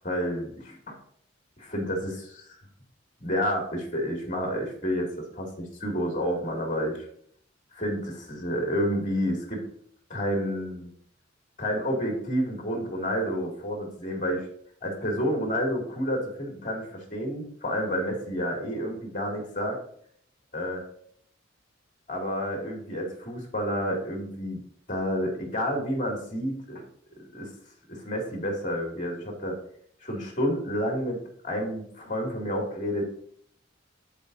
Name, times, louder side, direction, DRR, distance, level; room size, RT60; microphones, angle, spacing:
voice 1, 0.0-1.0 1.6-2.6 3.2-7.1 7.7-9.6 10.1-10.9 11.6-14.5 14.8-19.8 20.5-20.8 22.1-24.6 24.9-26.8 27.3-27.5 27.9-29.6 30.0-33.0, equal, 40° left, 0 dB, 2.5 m, -30 dB
13.0 x 4.9 x 2.7 m, 0.64 s
head